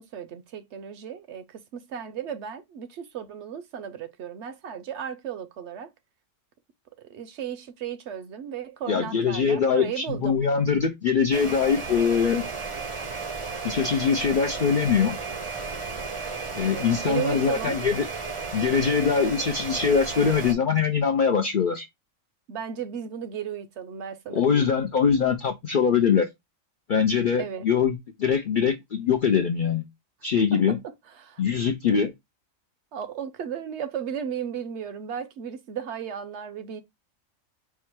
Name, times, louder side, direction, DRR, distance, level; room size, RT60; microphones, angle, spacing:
voice 1, 0.0-5.9 7.0-10.4 16.6-17.8 22.5-24.7 27.4-27.6 30.5-30.8 31.1-31.4 32.9-36.8, right 8 dB, 65° right, 0.8 m, -35 dB
voice 2, 8.9-12.4 13.6-15.2 16.6-18.1 18.5-21.8 24.3-26.3 26.9-29.8 30.2-30.8 31.4-32.1, left 6 dB, 65° left, 0.5 m, -23 dB
sound 1, 11.3-20.5, right 4 dB, 35° right, 0.5 m, -34 dB
4.7 x 2.2 x 4.4 m
omnidirectional pair, 1.4 m